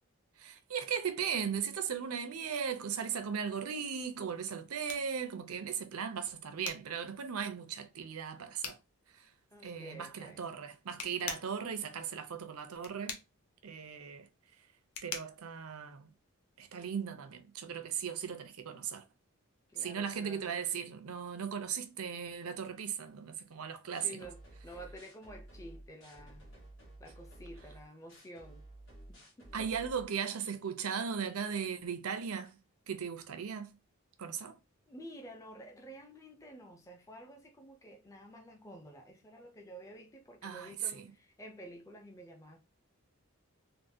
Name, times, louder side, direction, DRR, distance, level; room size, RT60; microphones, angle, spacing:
voice 1, 0.4-8.8 9.1-9.3 9.6-13.2 13.6-14.3 15.0-16.1 16.6-19.1 19.8-24.2 29.5-32.6 32.9-33.8 34.2-34.6 40.4-41.1, right 7 dB, 90° right, 0.6 m, -37 dB
sound 1, 4.1-16.6, left 6 dB, 80° left, 0.7 m, -48 dB
voice 2, 9.5-10.5 19.7-20.6 24.0-26.5 27.0-28.6 29.1-29.9 34.9-42.6, right 1 dB, 15° left, 0.4 m, -51 dB
sound 2, 23.9-30.1, right 1 dB, 60° left, 1.6 m, -53 dB
3.6 x 2.1 x 2.6 m
head